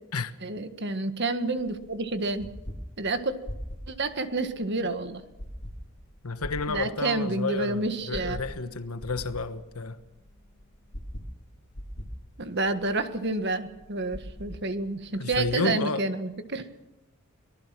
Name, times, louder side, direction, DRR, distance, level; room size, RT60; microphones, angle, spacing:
voice 1, 0.4-2.5 3.0-3.3 3.9-5.2 6.7-8.4 12.4-16.7, right 2 dB, 50° right, 1.7 m, -29 dB
sound 1, 1.6-15.6, equal, 55° left, 2.7 m, -43 dB
voice 2, 6.2-10.0 15.2-16.0, left 3 dB, 90° left, 1.2 m, -31 dB
24.5 x 19.0 x 6.1 m
head